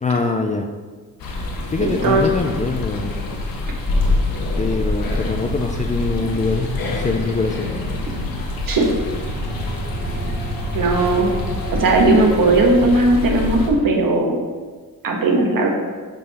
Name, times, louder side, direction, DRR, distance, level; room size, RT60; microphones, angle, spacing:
voice 1, 0.0-0.7 1.7-3.2 4.6-7.7, left 3 dB, 20° left, 4 dB, 0.3 m, -23 dB
sound 1, 1.2-13.7, left 2 dB, 70° left, 1.3 m, -26 dB
voice 2, 1.8-2.3 8.7-8.9 10.7-11.3 11.8-14.4 15.0-15.7, right 2 dB, 65° right, 1 dB, 1.3 m, -17 dB
sound 2, 5.1-11.9, right 2 dB, 25° right, 0.8 m, -33 dB
10.5 x 3.8 x 4.1 m, 1.4 s
wide cardioid pair, 170°, 36 cm